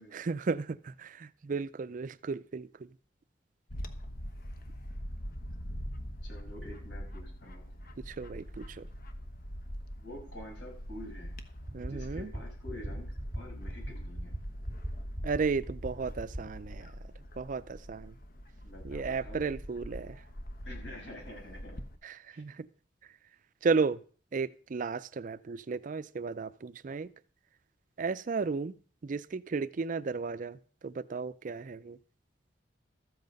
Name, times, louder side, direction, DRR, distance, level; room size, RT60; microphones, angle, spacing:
voice 1, 0.1-2.9 8.0-8.9 11.7-12.3 15.2-18.2 18.8-20.2 22.0-22.7 23.0-23.1 23.6-24.0 24.3-27.1 28.0-28.8 29.0-32.0, right 4 dB, 45° right, 0.4 m, -34 dB
Bird / Wind, 3.7-22.0, equal, 50° left, 1.1 m, -43 dB
voice 2, 6.2-7.9 10.0-11.4 11.8-14.3 18.6-19.5 20.6-21.8 22.3-22.4, left 1 dB, 70° left, 6.3 m, -48 dB
sound 1, 11.7-11.9 12.2-12.4 12.7-12.9 13.2-13.4 13.7-13.9 14.2-14.4 14.7-14.9 15.2-15.4 15.7-15.9 16.2-16.4, right 1 dB, 10° right, 2.4 m, -37 dB
13.5 x 8.0 x 5.3 m
head